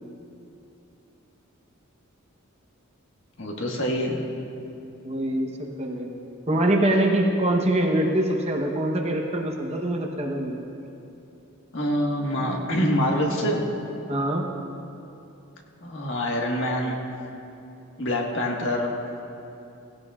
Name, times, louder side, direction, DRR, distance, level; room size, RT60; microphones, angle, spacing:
voice 1, 3.4-4.2 11.7-13.6 15.8-17.0 18.0-18.9, equal, 60° left, -1 dB, 1.6 m, -25 dB
voice 2, 5.0-6.1 6.5-10.6 14.1-14.5, right 1 dB, 30° right, 1 dB, 1.0 m, -24 dB
17.5 x 17.0 x 2.4 m, 2.8 s
head